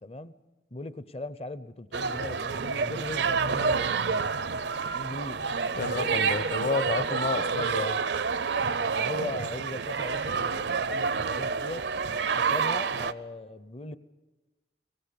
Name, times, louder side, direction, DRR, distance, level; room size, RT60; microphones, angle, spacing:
voice 1, 0.0-0.3 0.7-4.3 4.9-5.4 8.8-11.9 12.3-14.0, left 2 dB, 35° left, 15 dB, 0.6 m, -39 dB
sound 1, 1.9-13.1, right 5 dB, 70° right, 0.6 m, -28 dB
voice 2, 5.8-8.0, left 3 dB, 50° left, 11 dB, 1.0 m, -30 dB
23.0 x 19.5 x 6.8 m, 1.2 s
head